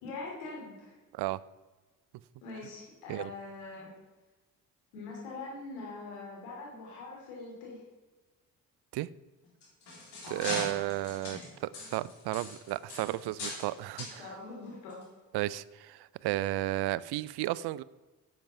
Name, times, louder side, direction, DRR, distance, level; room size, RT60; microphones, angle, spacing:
voice 1, 0.0-1.0 2.4-3.9 4.9-7.8 10.2-10.6 14.2-15.0, left 3 dB, 85° left, -3 dB, 3.1 m, -43 dB
sound 1, 9.4-13.7 14.0-14.2 14.9-15.0 15.5-15.6, left 2 dB, 65° left, 3.9 m, -40 dB
voice 2, 10.3-14.3 15.3-17.8, right 16 dB, 65° right, 20 dB, 0.5 m, -33 dB
8.7 x 8.0 x 5.8 m, 1.2 s
hypercardioid pair, 45°, 43 cm